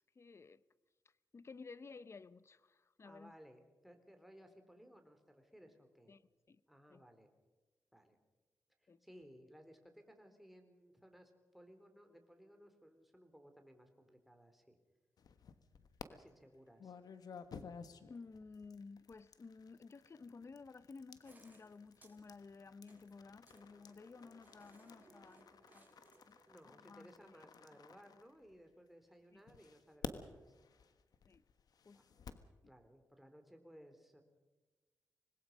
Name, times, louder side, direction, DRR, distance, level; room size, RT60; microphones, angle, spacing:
voice 1, 0.2-0.6 1.3-3.4 6.1-6.2 6.5-6.6 6.9-7.0 8.9-9.0 16.8-16.9 18.1-26.4 26.6-27.1 29.3-29.4 31.3-31.4 31.8-32.2 32.6-32.7, left 4 dB, 45° left, 0.8 m, -55 dB
voice 2, 3.0-6.1 6.7-7.3 7.9-8.2 8.8-14.8 16.1-17.0 26.5-30.6 31.9-32.1 32.7-34.2, equal, ahead, 3.8 m, -61 dB
sound 1, 15.2-16.1 16.8-28.8 29.5-32.5, left 6 dB, 75° left, 1.3 m, -53 dB
sound 2, 21.2-26.7, right 2 dB, 25° right, 4.6 m, -67 dB
26.0 x 20.0 x 5.4 m
cardioid pair, 65°, 7 cm